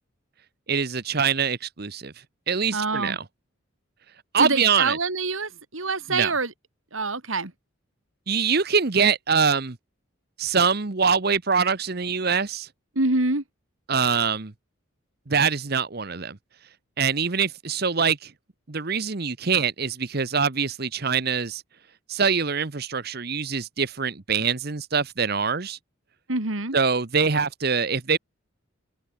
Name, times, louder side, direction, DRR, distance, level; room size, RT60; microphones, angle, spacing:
voice 1, 0.7-2.1 2.5-3.2 4.3-5.0 6.1-6.3 8.3-9.8 10.4-12.7 13.9-14.5 15.3-16.4 17.0-18.3 18.7-21.6 22.1-25.8 26.7-28.2, right 6 dB, 50° right, 1.0 m, -24 dB
voice 2, 2.7-3.2 4.4-6.5 6.9-7.5 12.9-13.4 26.3-26.8, right 3 dB, 75° right, 2.9 m, -26 dB
head